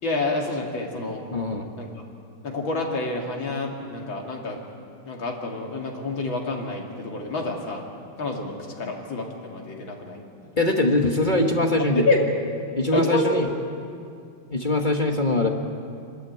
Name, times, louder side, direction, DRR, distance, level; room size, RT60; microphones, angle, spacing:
voice 1, 0.0-1.2 1.8-1.9 2.4-4.6 5.0-7.8 8.2-10.5 11.8-12.3 12.9-13.6, left 2 dB, 65° left, 0 dB, 3.2 m, -28 dB
voice 2, 1.3-1.7 10.6-12.0 12.8-13.5 14.5-15.5, left 2 dB, 30° left, 3 dB, 1.1 m, -22 dB
26.5 x 13.0 x 9.3 m, 2.3 s
omnidirectional pair, 2.4 m